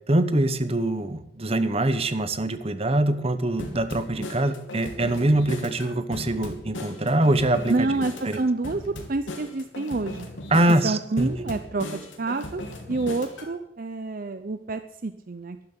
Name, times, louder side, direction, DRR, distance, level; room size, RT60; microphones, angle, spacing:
voice 1, 0.1-7.7 8.2-8.4 10.5-11.5, right 1 dB, 30° right, 11 dB, 1.0 m, -23 dB
sound 1, 3.6-13.5, left 1 dB, 75° left, 2.7 m, -37 dB
voice 2, 7.7-10.3 10.8-12.6 12.9-15.7, right 3 dB, 45° right, 10 dB, 0.6 m, -28 dB
12.0 x 11.5 x 8.1 m, 0.83 s
head